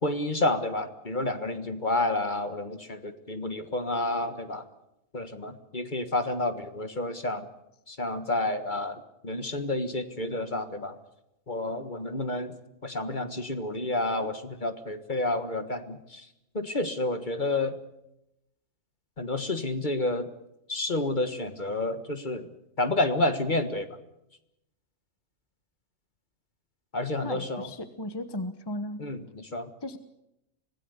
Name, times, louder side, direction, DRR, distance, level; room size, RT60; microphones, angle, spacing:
voice 1, 0.0-4.6 5.1-7.5 7.9-10.9 11.5-12.5 12.8-16.3 16.5-17.7 19.2-20.3 20.7-22.5 22.8-23.9 26.9-27.7 29.0-29.7, left 2 dB, 35° left, 9 dB, 1.6 m, -30 dB
voice 2, 27.2-29.1 29.8-30.0, left 1 dB, 20° left, 10 dB, 1.2 m, -36 dB
25.0 x 17.5 x 8.1 m, 0.87 s
omnidirectional pair, 1.4 m